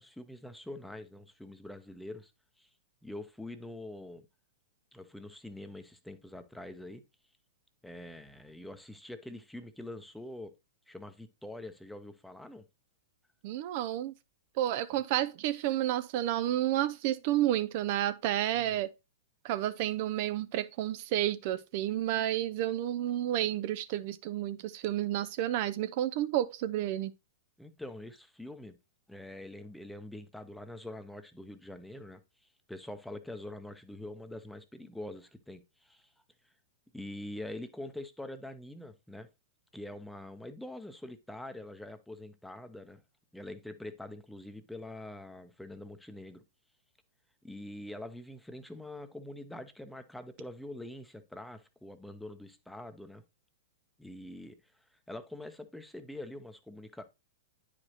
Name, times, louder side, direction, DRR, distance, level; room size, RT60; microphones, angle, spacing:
voice 1, 0.0-2.3 2.6-2.7 3.0-4.3 4.9-7.0 7.8-10.5 10.9-12.7 18.6-18.7 27.6-28.8 29.1-32.2 32.7-36.1 36.9-39.3 39.7-43.0 43.3-46.4 47.4-53.2 54.0-57.1, left 1 dB, 5° left, 0.7 m, -45 dB
voice 2, 13.4-14.1 14.6-18.9 19.4-27.1, right 13 dB, 50° right, 0.4 m, -31 dB
9.5 x 5.0 x 2.9 m
hypercardioid pair, 110°, 0 cm